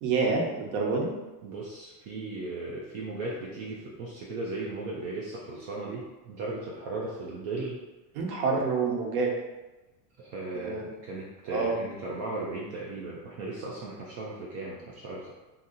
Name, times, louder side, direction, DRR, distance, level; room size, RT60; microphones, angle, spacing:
voice 1, 0.0-1.1 8.2-9.3 10.5-10.8 11.5-11.8, right 4 dB, 65° right, 0 dB, 1.0 m, -27 dB
voice 2, 1.4-7.8 10.2-15.3, right 2 dB, 35° right, -4 dB, 0.4 m, -36 dB
2.9 x 2.7 x 3.8 m, 1.1 s
supercardioid pair, 145°, 49 cm